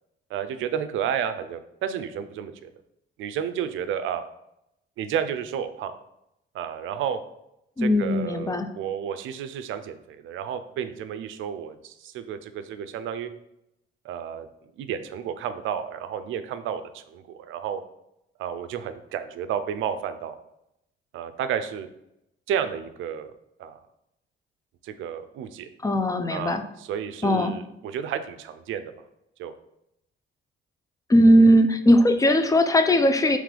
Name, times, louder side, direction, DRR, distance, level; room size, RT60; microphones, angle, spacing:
voice 1, 0.3-2.7 3.2-4.2 5.0-5.9 6.5-7.2 7.8-13.3 14.0-14.5 14.8-17.8 18.4-20.4 21.1-21.9 22.5-23.3 23.6-23.8 24.8-25.7 26.3-28.9 29.4-29.5, right 8 dB, 80° right, 10 dB, 0.4 m, -31 dB
voice 2, 7.8-8.7 25.8-26.6 27.2-27.5 31.1-33.4, equal, 15° left, 8 dB, 0.3 m, -19 dB
3.6 x 3.1 x 3.3 m, 0.81 s
cardioid pair, 90°, 20 cm